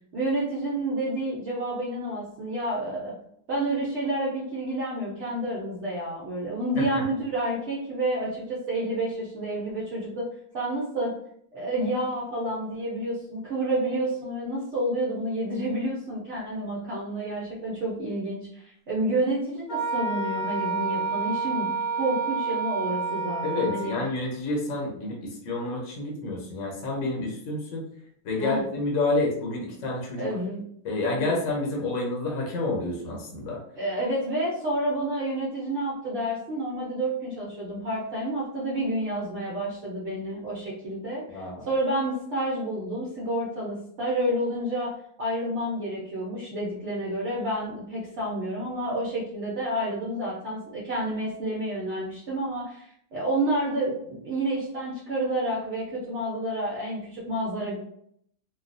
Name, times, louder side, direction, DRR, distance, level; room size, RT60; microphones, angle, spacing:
voice 1, 0.1-3.1 3.5-10.3 10.5-11.1 11.5-21.7 22.0-24.0 28.4-28.6 30.2-30.6 31.2-31.3 33.8-44.9 45.2-57.8, right 1 dB, 60° right, -7 dB, 1.0 m, -29 dB
Wind instrument woodwind instrument, 19.7-24.1, right 4 dB, 85° left, 1.5 m, -29 dB
voice 2, 23.4-27.8 28.2-30.3 30.8-33.6 41.3-41.7, left 2 dB, 60° left, -2 dB, 1.1 m, -29 dB
3.2 x 2.3 x 2.5 m, 0.69 s
omnidirectional pair, 1.5 m